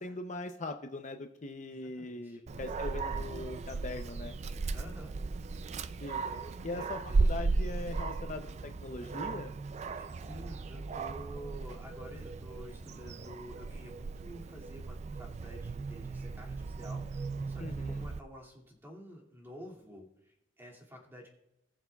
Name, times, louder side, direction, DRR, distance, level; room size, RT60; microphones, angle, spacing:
voice 1, 0.0-4.4 6.0-6.2 6.6-9.5 17.6-18.0, left 2 dB, 40° left, 6 dB, 0.6 m, -41 dB
voice 2, 1.7-2.4 4.7-5.1 6.0-7.2 9.9-21.3, equal, 15° right, -2 dB, 2.3 m, -50 dB
Dog, 2.5-18.2, right 3 dB, 35° right, 0.3 m, -36 dB
19.5 x 6.9 x 2.3 m, 0.88 s
head